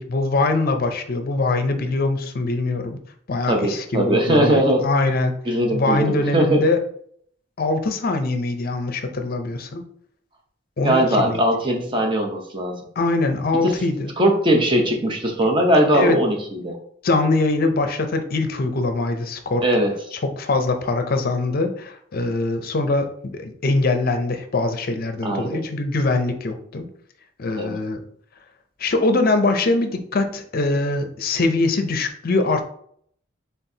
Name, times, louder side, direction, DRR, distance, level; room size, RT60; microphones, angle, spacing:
voice 1, 0.0-3.0 3.3-5.3 5.7-6.8 7.6-9.8 10.8-11.4 13.0-14.1 15.9-16.2 17.0-19.6 20.1-26.9 27.4-28.0 28.8-32.6, left 2 dB, 50° left, 7 dB, 0.5 m, -22 dB
voice 2, 3.5-4.9 5.5-6.7 10.8-12.8 13.6-13.7 14.2-16.8 19.6-19.9 25.2-25.6 27.6-27.8, right 1 dB, 25° right, 1 dB, 0.7 m, -20 dB
4.5 x 3.5 x 2.7 m, 0.64 s
head